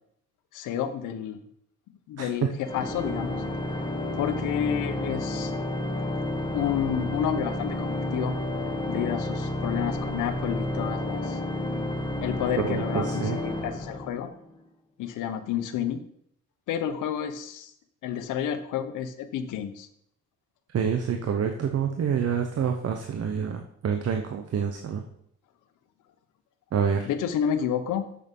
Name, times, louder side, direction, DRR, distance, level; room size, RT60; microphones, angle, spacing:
voice 1, 0.5-1.4 2.1-3.4 4.2-5.5 6.5-8.3 8.9-11.4 12.2-14.3 15.0-16.0 16.7-17.7 18.0-19.9 27.1-28.0, left 9 dB, 90° left, 10 dB, 1.1 m, -30 dB
voice 2, 2.2-2.5 12.6-13.4 20.7-25.0 26.7-27.1, right 7 dB, 55° right, 5 dB, 1.1 m, -27 dB
Organ, 2.6-14.5, left 1 dB, 15° left, 1.7 m, -31 dB
8.2 x 6.6 x 5.5 m, 0.68 s
cardioid pair, 90°, 30 cm